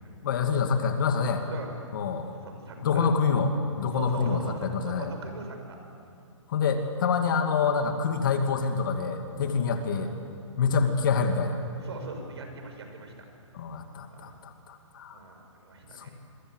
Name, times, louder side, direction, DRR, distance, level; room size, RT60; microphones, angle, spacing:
voice 1, 0.2-1.4 1.9-2.3 2.8-3.5 3.8-5.1 6.5-10.1 10.6-11.6 13.5-15.2 16.0-16.1, left 5 dB, 40° left, 5 dB, 2.3 m, -26 dB
voice 2, 1.5-1.8 2.6-3.1 3.9-5.8 9.4-9.7 11.8-13.2 14.1-14.3 15.1-16.1, right 3 dB, 55° right, 4 dB, 6.0 m, -41 dB
27.5 x 23.0 x 8.1 m, 2.5 s
hypercardioid pair, 165°, 16 cm